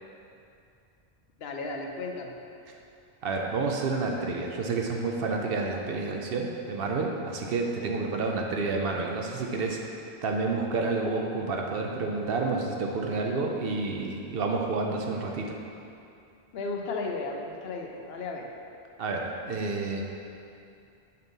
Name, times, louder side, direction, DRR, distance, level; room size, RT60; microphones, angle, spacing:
voice 1, 1.4-2.3 16.5-18.5, left 3 dB, 70° left, 2 dB, 0.8 m, -34 dB
voice 2, 3.2-9.8 10.2-15.5 19.0-20.0, right 3 dB, 65° right, 1 dB, 0.8 m, -29 dB
5.4 x 5.3 x 4.0 m, 2.6 s
omnidirectional pair, 1.1 m